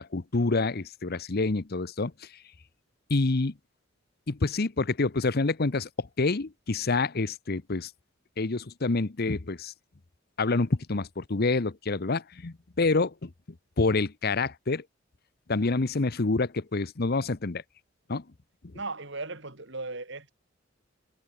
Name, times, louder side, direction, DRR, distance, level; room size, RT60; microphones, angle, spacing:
voice 1, 0.0-2.1 3.1-3.5 4.3-7.9 8.4-9.7 10.4-13.3 13.8-14.8 15.5-17.6 18.1-18.2, left 3 dB, 55° left, 0.9 m, -27 dB
voice 2, 18.7-20.3, right 3 dB, 65° right, 4.8 m, -37 dB
head